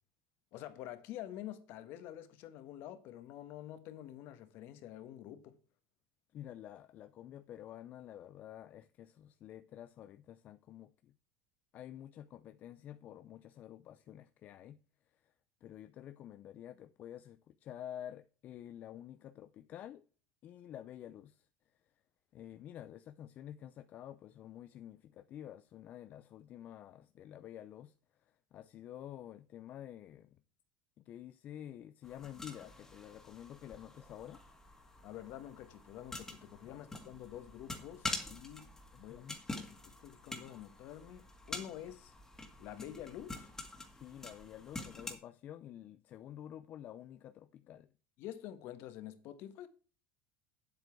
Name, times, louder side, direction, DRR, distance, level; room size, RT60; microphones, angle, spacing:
voice 1, 0.5-5.6 35.0-38.7 39.0-42.1 42.6-43.5 48.2-49.7, left 12 dB, 55° left, 1.4 m, -48 dB
voice 2, 6.3-11.1 11.7-14.8 15.2-15.3 15.6-20.0 20.4-21.5 22.3-27.9 28.5-30.4 31.0-34.4 36.7-36.9 39.1-39.4 43.9-47.9, left 11 dB, 40° left, 0.5 m, -50 dB
sound 1, 32.0-45.2, left 2 dB, 10° left, 1.9 m, -46 dB
9.3 x 8.0 x 4.6 m
cardioid pair, 155°, 5 cm